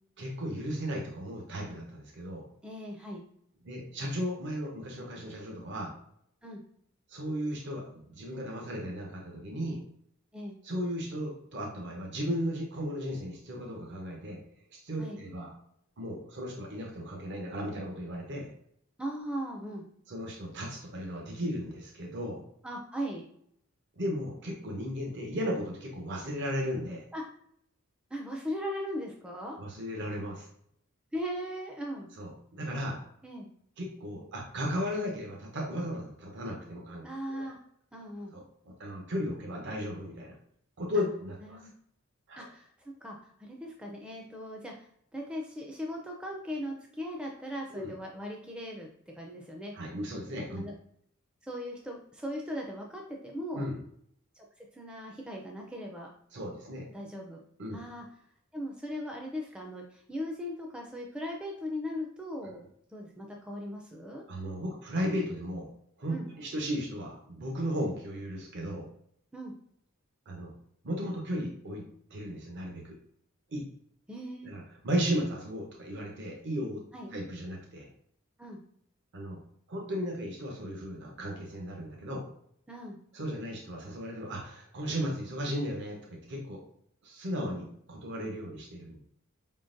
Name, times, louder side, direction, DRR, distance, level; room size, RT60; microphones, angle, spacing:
voice 1, 0.2-2.5 3.6-5.9 7.1-9.8 10.6-14.4 14.7-15.5 16.0-18.5 20.1-22.4 24.0-27.0 29.6-30.5 32.2-33.0 33.8-37.0 37.3-37.5 38.3-40.3 40.8-41.7 42.3-42.5 47.7-47.9 49.7-50.6 53.5-53.8 56.3-56.8 57.6-57.8 64.3-65.7 66.0-68.9 70.3-70.5 70.8-71.8 72.1-73.0 73.5-73.6 74.4-76.8 77.1-77.9 79.1-79.4 79.7-82.2 83.1-86.6 87.0-89.0, equal, 55° right, 0 dB, 0.8 m, -35 dB
voice 2, 2.6-3.2 6.4-6.6 10.3-10.6 15.0-15.2 19.0-19.9 22.6-23.2 27.1-27.2 28.1-29.6 31.1-32.1 33.2-33.5 37.0-37.6 37.9-38.3 41.4-41.7 42.4-48.9 49.2-49.7 50.6-50.7 51.4-53.7 54.3-56.1 56.9-57.4 57.7-58.1 58.5-64.2 66.1-66.3 69.3-69.5 74.1-74.5 76.9-77.1 78.4-78.6 82.7-83.0, equal, 5° right, 0 dB, 0.4 m, -38 dB
4.9 x 3.7 x 2.5 m, 0.71 s
head